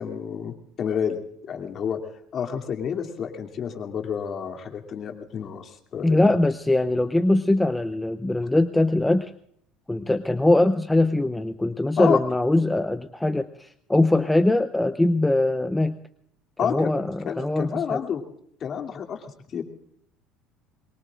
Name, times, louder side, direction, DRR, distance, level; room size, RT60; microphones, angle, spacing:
voice 1, 0.0-2.0 2.3-6.3 12.0-12.2 16.6-16.9 17.2-18.2 18.6-19.6, left 7 dB, 45° left, 4 dB, 2.7 m, -29 dB
voice 2, 6.0-9.3 9.9-16.0 16.6-18.0, left 2 dB, 10° left, 10 dB, 0.7 m, -22 dB
24.0 x 22.0 x 2.5 m, 0.68 s
supercardioid pair, 110°, 0 cm